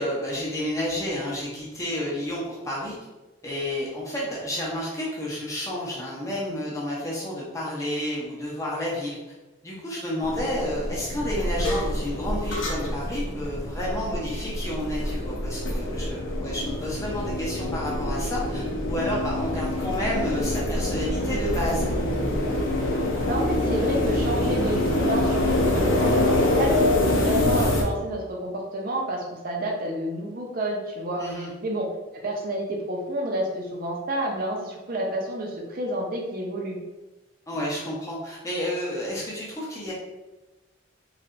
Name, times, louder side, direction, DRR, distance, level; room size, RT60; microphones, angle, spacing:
voice 1, 0.0-3.0 3.4-9.2 9.6-21.9 31.2-31.5 37.5-39.9, left 1 dB, 15° left, -5 dB, 0.7 m, -30 dB
sound 1, 10.2-27.8, left 1 dB, 75° left, 0.6 m, -25 dB
voice 2, 23.2-31.3 31.6-31.9 32.2-36.8, right 1 dB, 45° right, 0 dB, 0.5 m, -29 dB
3.2 x 2.7 x 2.5 m, 1.1 s
head